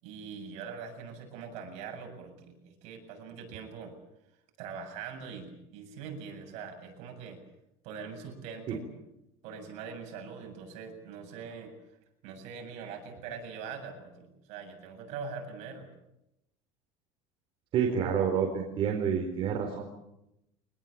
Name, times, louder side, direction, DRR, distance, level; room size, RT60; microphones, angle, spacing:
voice 1, 0.0-3.9 4.6-7.4 7.8-8.8 9.4-11.7 12.2-15.9, right 6 dB, 60° right, 4 dB, 7.6 m, -42 dB
voice 2, 17.7-19.9, right 7 dB, 45° right, 2 dB, 4.2 m, -28 dB
24.0 x 20.5 x 8.9 m, 0.86 s
cardioid pair, 140°, 13 cm